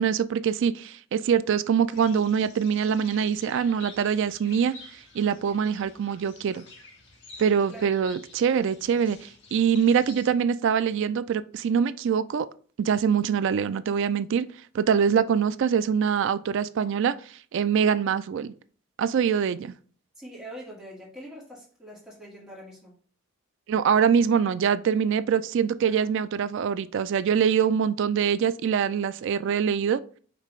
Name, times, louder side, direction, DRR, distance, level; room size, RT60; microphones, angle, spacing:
voice 1, 0.0-6.6 7.4-12.5 12.8-14.5 14.7-18.5 19.0-19.8 23.7-30.0, right 7 dB, 55° right, 0.3 m, -24 dB
sound 1, 1.9-10.3, left 3 dB, 55° left, 1.1 m, -49 dB
voice 2, 20.2-22.9 25.8-26.0, equal, 5° right, 1.9 m, -43 dB
5.2 x 3.2 x 3.1 m
head